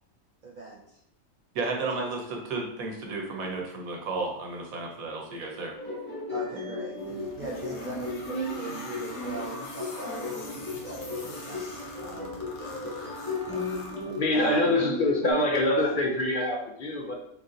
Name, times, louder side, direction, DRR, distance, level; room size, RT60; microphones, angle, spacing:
voice 1, 0.4-1.0 1.8-1.9 6.3-12.4 14.3-14.6 15.8-15.9, right 3 dB, 50° right, -3 dB, 0.6 m, -40 dB
voice 2, 1.5-5.7, right 3 dB, 80° right, 1 dB, 1.3 m, -33 dB
Full of Energy, 5.8-15.3, left 2 dB, 10° left, 0.7 m, -35 dB
sound 1, 7.0-14.5, left 2 dB, 85° left, 1.2 m, -43 dB
voice 3, 14.1-17.2, left 1 dB, 55° left, 0 dB, 0.6 m, -25 dB
3.6 x 2.6 x 3.8 m, 0.72 s
omnidirectional pair, 1.4 m